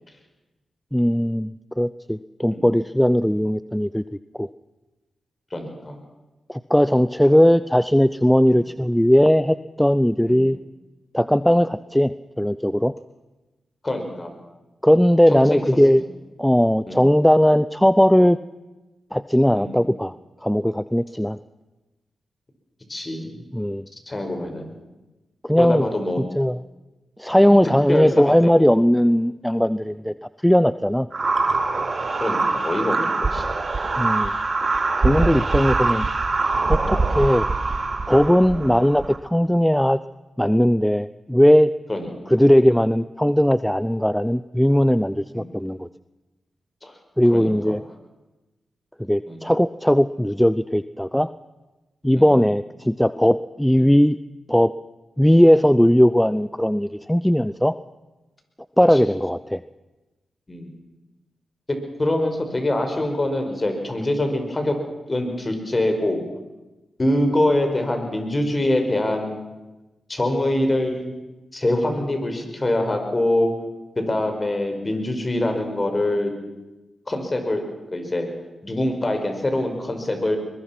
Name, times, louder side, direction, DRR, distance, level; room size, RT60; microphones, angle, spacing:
voice 1, 0.9-4.0 4.4-4.5 6.5-10.6 11.1-12.9 14.8-16.0 16.4-18.4 19.1-20.2 20.4-21.4 23.5-23.9 25.4-25.8 26.4-26.6 27.2-30.1 30.4-31.1 34.0-34.3 35.0-36.1 36.7-37.5 38.1-40.0 40.4-41.7 42.3-45.9 47.2-47.8 49.0-51.3 52.0-54.2 54.5-54.7 55.2-57.7 58.8-59.6, equal, 5° left, 15 dB, 0.6 m, -18 dB
voice 2, 5.5-6.0 7.3-7.4 8.5-8.6 10.2-10.4 11.4-11.6 13.8-14.3 15.3-15.6 15.9-16.0 16.9-17.0 19.5-19.8 22.9-23.3 24.1-24.7 25.6-26.2 27.4-27.5 27.9-28.7 32.2-33.5 36.8-37.0 38.5-38.7 41.9-42.1 45.3-45.4 46.8-46.9 47.3-47.8 49.3-49.4 52.2-52.4 58.9-59.0 60.5-60.7 61.7-64.8 65.1-66.2 67.0-69.5 70.1-71.1 71.5-73.5 74.0-76.3 77.1-77.6 77.9-78.3 78.6-80.4, left 1 dB, 35° left, 5 dB, 5.3 m, -24 dB
sound 1, 31.1-39.2, right 3 dB, 50° right, 2.6 m, -23 dB
22.5 x 21.0 x 6.0 m, 1.1 s
supercardioid pair, 40°, 0 cm